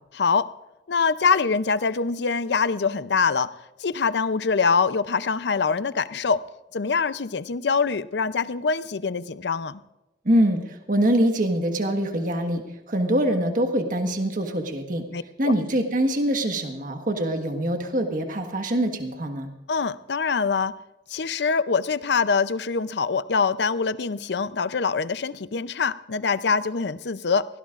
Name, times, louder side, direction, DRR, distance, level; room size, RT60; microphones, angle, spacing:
voice 1, 0.1-0.5 0.9-3.5 3.8-6.4 6.7-9.8 15.1-15.5 19.7-20.7 21.1-27.5, left 5 dB, 65° left, 14 dB, 0.6 m, -24 dB
voice 2, 10.2-15.0 15.4-19.5, right 1 dB, 50° right, 5 dB, 1.4 m, -24 dB
23.0 x 17.0 x 2.5 m, 1.0 s
head